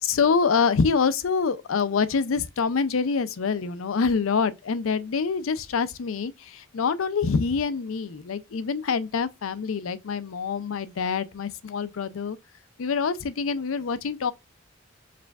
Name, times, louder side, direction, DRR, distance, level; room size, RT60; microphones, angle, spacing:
voice 1, 0.0-12.4 12.8-14.3, left 5 dB, 85° left, 0.5 m, -26 dB
4.9 x 2.2 x 3.4 m
head